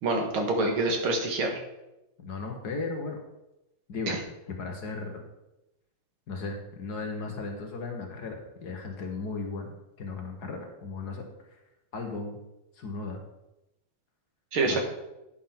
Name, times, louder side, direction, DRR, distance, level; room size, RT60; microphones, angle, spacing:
voice 1, 0.0-1.6 4.1-4.2 14.5-14.8, right 2 dB, 85° right, 3 dB, 2.4 m, -26 dB
voice 2, 2.2-3.2 3.9-4.2 4.5-5.2 6.3-9.7 10.0-11.3 11.9-12.4 12.8-13.2 14.6-14.8, left 3 dB, 55° left, 2 dB, 1.7 m, -36 dB
10.5 x 5.5 x 5.8 m, 0.94 s
omnidirectional pair, 2.3 m